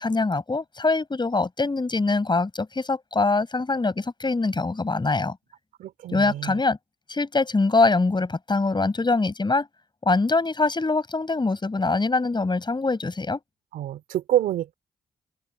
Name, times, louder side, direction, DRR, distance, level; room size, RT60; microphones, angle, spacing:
voice 1, 0.0-5.4 6.1-6.8 7.1-9.7 10.0-13.4, left 3 dB, 35° left, 7.6 m, -23 dB
voice 2, 5.8-6.6 13.7-14.7, right 12 dB, 85° right, 3.2 m, -27 dB
open air
supercardioid pair, 45°, 14 cm